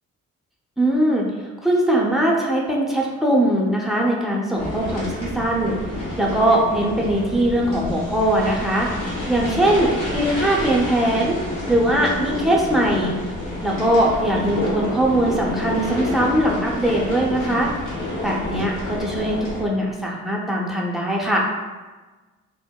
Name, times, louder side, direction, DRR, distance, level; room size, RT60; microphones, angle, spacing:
voice 1, 0.8-1.3 1.6-5.7 6.2-8.9 9.3-11.4 11.7-13.1 13.6-17.7 18.2-21.5, right 1 dB, ahead, -3 dB, 0.6 m, -21 dB
sound 1, 4.6-19.6, left 1 dB, 60° left, 1.0 m, -29 dB
2.8 x 2.0 x 2.3 m, 1.3 s
hypercardioid pair, 40°, 35 cm